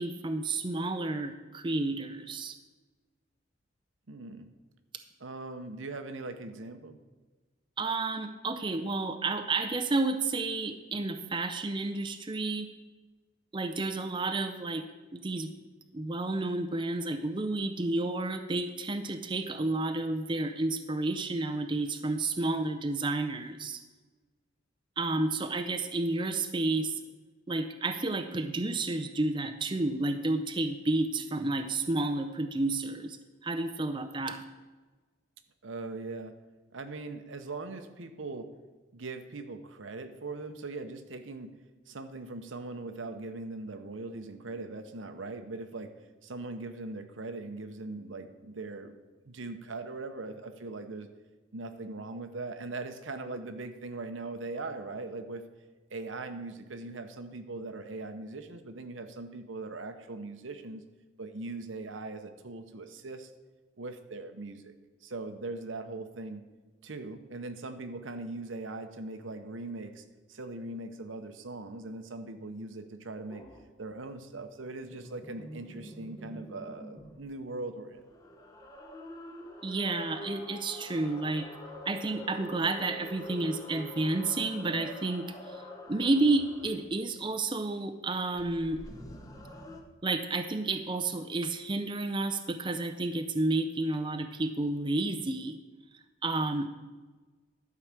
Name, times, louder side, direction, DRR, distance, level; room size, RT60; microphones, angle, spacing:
voice 1, 0.0-2.6 7.8-12.7 13.5-14.8 15.1-15.5 15.9-23.8 25.0-27.0 27.5-34.4 79.6-81.5 81.9-88.8 90.0-95.6 96.2-96.7, right 2 dB, 25° right, 7 dB, 0.5 m, -31 dB
voice 2, 4.1-4.5 5.2-7.0 35.6-36.3 36.7-38.5 38.9-41.5 41.9-45.9 46.2-49.0 49.2-51.1 51.5-55.5 55.9-60.8 61.2-63.3 63.8-64.7 65.0-66.4 66.8-73.4 73.8-78.0, right 3 dB, 80° right, 8 dB, 0.9 m, -40 dB
sound 1, 73.3-73.7 74.8-77.2 77.9-86.9 88.3-89.8, left 1 dB, 20° left, 1.0 m, -45 dB
12.0 x 4.8 x 7.4 m, 1.3 s
head